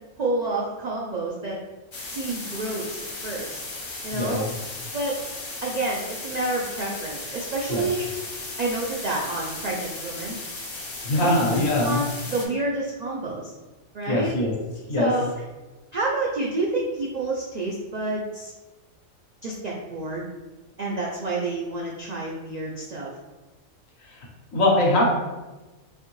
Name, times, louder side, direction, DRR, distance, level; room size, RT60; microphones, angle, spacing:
voice 1, 0.2-1.6 2.1-3.6 4.0-4.5 4.9-5.2 5.6-8.1 8.6-10.4 11.2-13.5 13.9-14.3 15.0-15.3 15.9-18.5 19.4-20.3 20.8-23.1, right 2 dB, 70° right, -3 dB, 0.4 m, -28 dB
sound 1, 1.9-12.5, left 2 dB, 45° left, 0.4 m, -36 dB
voice 2, 4.1-4.4 7.7-7.8 11.0-12.0 14.1-14.5 14.9-15.1 24.5-25.0, left 1 dB, 80° left, -2 dB, 1.3 m, -22 dB
4.2 x 2.6 x 3.0 m, 1.2 s
omnidirectional pair, 1.3 m